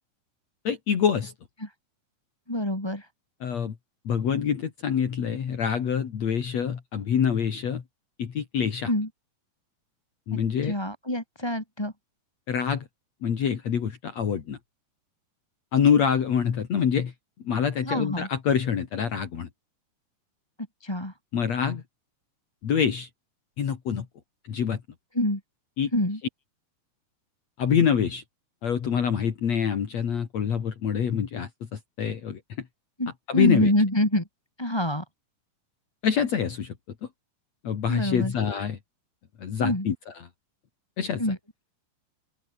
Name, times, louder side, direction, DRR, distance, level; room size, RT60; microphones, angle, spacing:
voice 1, 0.6-1.3 3.4-3.7 4.0-7.8 8.2-8.9 10.3-10.7 12.5-12.9 13.2-14.6 15.7-17.1 17.4-19.5 21.3-21.8 22.6-23.1 23.6-24.1 24.5-24.8 25.8-25.9 27.6-28.2 28.6-32.4 33.3-33.7 36.0-36.7 37.6-38.8 39.4-40.3 41.0-41.2, left 7 dB, 55° left, 3.3 m, -26 dB
voice 2, 2.5-3.1 8.9-9.1 10.6-11.9 17.8-18.3 20.8-21.1 25.1-25.4 25.9-26.2 33.0-34.2 34.6-35.0 37.9-38.3 39.6-39.9 41.2-41.4, left 1 dB, 5° left, 3.8 m, -26 dB
open air
omnidirectional pair, 3.8 m